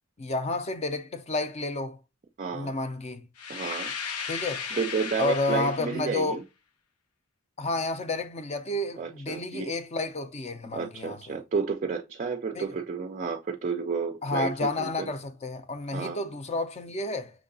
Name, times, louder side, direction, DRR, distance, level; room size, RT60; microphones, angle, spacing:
voice 1, 0.2-2.0 2.5-3.3 4.3-4.7 5.2-6.4 7.6-11.2 12.5-12.7 14.2-17.3, left 2 dB, 30° left, 0.5 m, -30 dB
voice 2, 2.4-2.7 3.5-3.9 4.7-6.4 9.0-9.7 10.7-15.1 15.9-16.2, right 5 dB, 35° right, 0.4 m, -31 dB
sound 1, 3.4-6.1, left 6 dB, 85° left, 0.7 m, -36 dB
5.9 x 2.8 x 2.6 m
head